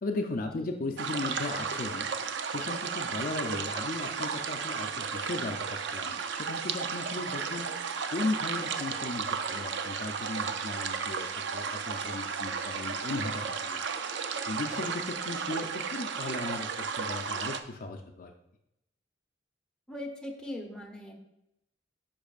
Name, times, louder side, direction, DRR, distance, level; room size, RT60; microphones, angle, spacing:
voice 1, 0.0-2.1 2.5-7.7 8.1-11.3 11.5-13.8 14.5-18.3, left 2 dB, 45° left, 4 dB, 0.5 m, -36 dB
sound 1, 1.0-17.6, right 6 dB, 65° right, 0.5 m, -34 dB
voice 2, 19.9-21.1, left 1 dB, 5° left, 0 dB, 0.9 m, -40 dB
10.5 x 5.4 x 2.4 m, 0.83 s
head